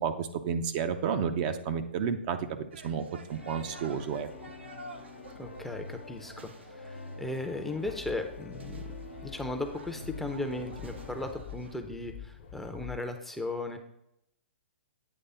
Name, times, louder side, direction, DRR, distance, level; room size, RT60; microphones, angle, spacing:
voice 1, 0.0-2.4 2.7-4.3, right 7 dB, 40° right, 8 dB, 0.6 m, -31 dB
sound 1, 2.7-11.8, right 3 dB, 75° right, 0.8 m, -51 dB
sound 2, 3.3-11.3, left 2 dB, 80° left, 1.0 m, -46 dB
voice 2, 5.4-8.9 9.2-13.8, left 2 dB, 5° left, 5 dB, 0.6 m, -36 dB
sound 3, 7.8-13.0, left 10 dB, 50° left, 1.0 m, -46 dB
8.7 x 3.3 x 5.5 m, 0.79 s
hypercardioid pair, 125°, 6 cm